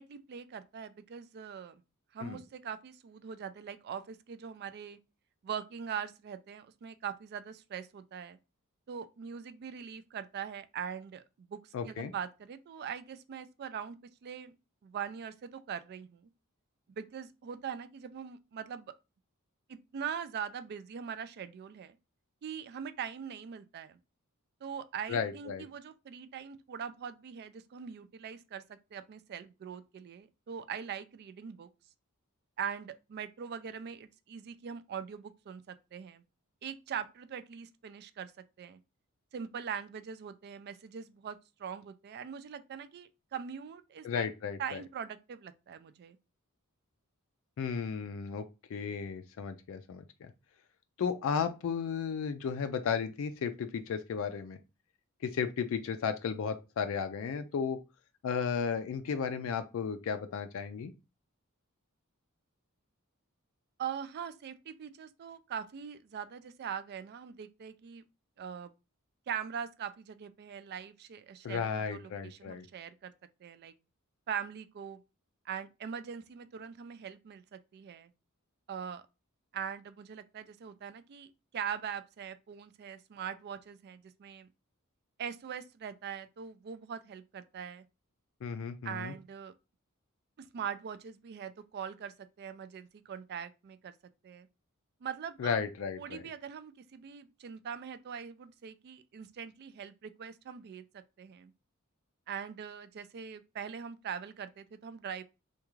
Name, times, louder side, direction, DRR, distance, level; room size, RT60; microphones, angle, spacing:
voice 1, 0.0-1.8 2.1-5.0 5.4-8.4 8.9-14.0 14.2-14.5 14.8-16.3 16.9-18.9 19.7-22.0 22.4-24.0 24.6-31.7 32.6-36.2 36.6-38.3 38.6-38.8 39.3-44.3 44.6-46.2 63.8-68.0 68.4-68.7 69.3-73.1 73.4-73.7 74.3-75.0 75.5-78.1 78.7-79.0 79.5-84.5 85.2-87.8 88.8-89.5 90.4-93.9 94.2-94.5 95.0-95.6 96.0-100.8 101.2-101.5 102.3-105.2, right 7 dB, 50° right, 0.3 m, -42 dB
voice 2, 11.7-12.1 25.1-25.6 44.0-44.8 47.6-48.4 48.7-50.3 51.0-54.6 55.2-57.8 58.2-60.9 71.4-72.6 88.4-89.1 95.4-96.2, left 6 dB, 65° left, 0.3 m, -34 dB
3.5 x 2.3 x 3.0 m
head